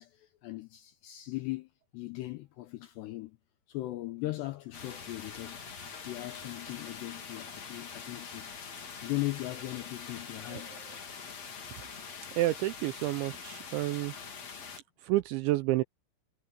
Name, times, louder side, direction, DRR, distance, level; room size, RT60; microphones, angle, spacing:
voice 1, 0.0-3.4 3.7-5.7 6.1-8.5 8.9-10.8, left 18 dB, 85° left, 2.4 m, -38 dB
sound 1, 4.7-14.8, left 6 dB, 40° left, 3.1 m, -44 dB
voice 2, 12.4-14.1 15.0-15.8, right 17 dB, 85° right, 2.7 m, -29 dB
omnidirectional pair, 5.9 m